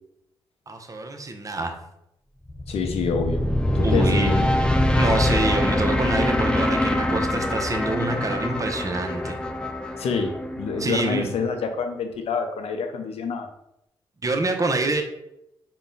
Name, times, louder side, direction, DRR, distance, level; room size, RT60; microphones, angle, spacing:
voice 1, 0.7-1.7 3.8-4.4 5.0-9.4 10.8-11.4 14.2-15.0, right 2 dB, 30° right, 4 dB, 0.7 m, -26 dB
sound 1, 2.5-11.6, left 1 dB, 10° left, 0.4 m, -24 dB
voice 2, 2.7-3.4 3.7-4.5 10.0-13.5, left 5 dB, 70° left, 6 dB, 0.6 m, -27 dB
4.0 x 2.2 x 3.7 m, 0.80 s
supercardioid pair, 45°, 11 cm